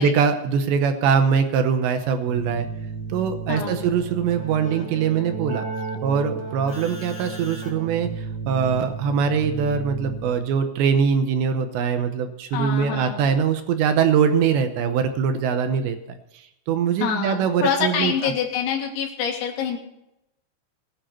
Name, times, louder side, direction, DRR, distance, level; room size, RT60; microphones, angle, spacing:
voice 1, 0.0-2.7 3.1-5.7 6.0-16.0 16.3-18.3, right 6 dB, 75° right, 8 dB, 2.8 m, -22 dB
Keyboard (musical), 2.3-10.6, right 4 dB, 5° right, 3.3 m, -33 dB
voice 2, 3.5-3.9 12.5-13.3 17.0-19.8, left 7 dB, 85° left, 0 dB, 4.8 m, -26 dB
20.5 x 10.5 x 4.4 m, 0.86 s
omnidirectional pair, 5.9 m